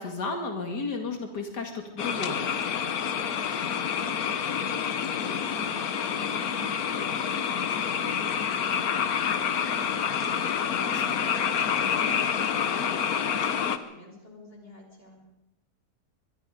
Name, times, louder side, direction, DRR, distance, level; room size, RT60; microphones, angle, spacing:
voice 1, 0.0-2.5 10.7-11.0, left 3 dB, 90° left, 4 dB, 2.8 m, -33 dB
sound 1, 2.0-13.8, left 7 dB, 65° left, 1.5 m, -28 dB
voice 2, 4.1-10.7 11.0-15.2, left 1 dB, 35° left, 1 dB, 5.4 m, -47 dB
24.5 x 21.5 x 5.1 m, 0.90 s
omnidirectional pair, 1.7 m